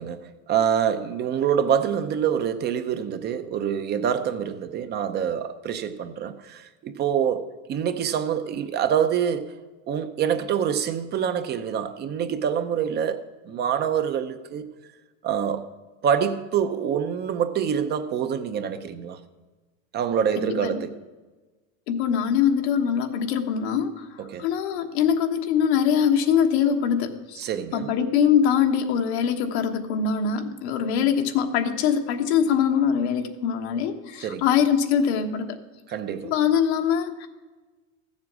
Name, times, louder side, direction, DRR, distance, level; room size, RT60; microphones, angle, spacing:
voice 1, 0.0-9.5 9.9-14.7 15.2-15.7 16.0-19.2 19.9-21.0 24.2-24.5 27.4-27.9 34.2-34.4 35.9-36.3, right 8 dB, 30° right, 0.6 m, -26 dB
voice 2, 20.4-20.8 21.9-27.4 27.7-35.6 36.2-37.3, left 7 dB, 85° left, 1.3 m, -23 dB
14.0 x 7.4 x 6.1 m
supercardioid pair, 145°, 32 cm